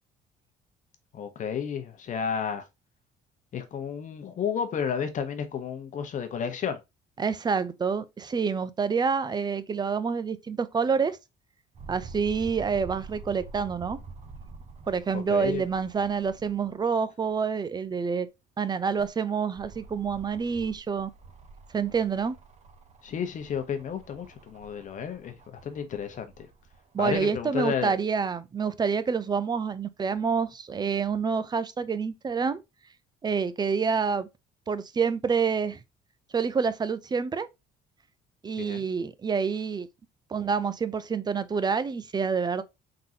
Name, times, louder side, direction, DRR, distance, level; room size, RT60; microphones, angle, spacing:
voice 1, 1.1-2.6 3.5-6.8 15.1-15.6 23.0-26.5 27.0-27.9 38.6-38.9, left 7 dB, 50° left, 1.0 m, -32 dB
voice 2, 7.2-11.2 11.9-14.0 14.9-18.3 18.6-21.1 21.7-22.4 26.9-32.6 33.2-34.3 34.7-35.8 36.3-37.5 38.4-39.9 40.3-42.6, right 5 dB, 25° right, 0.5 m, -27 dB
sound 1, 11.8-16.8 17.3-17.4 18.7-27.2 28.0-28.1, right 4 dB, 40° right, 0.9 m, -47 dB
3.8 x 3.8 x 2.8 m
cardioid pair, 110°, 17 cm